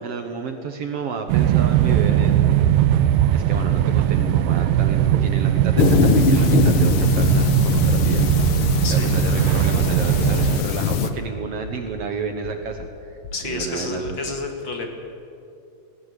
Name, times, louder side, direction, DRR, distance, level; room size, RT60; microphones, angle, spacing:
voice 1, 0.0-2.6 3.3-8.3 8.6-13.2 13.4-14.2, right 5 dB, 60° right, 6 dB, 1.7 m, -31 dB
sound 1, 1.3-10.6, right 11 dB, 85° right, 2.5 m, -19 dB
sound 2, 5.8-11.1, left 7 dB, 80° left, 1.2 m, -21 dB
voice 2, 8.8-9.2 13.3-14.9, left 2 dB, 40° left, 3 dB, 2.4 m, -29 dB
sound 3, 11.1-11.2 11.6-12.0 12.4-12.9 13.2-13.7 14.0-14.2, left 4 dB, 55° left, 2.8 m, -38 dB
18.5 x 18.0 x 8.2 m, 2.6 s
omnidirectional pair, 3.8 m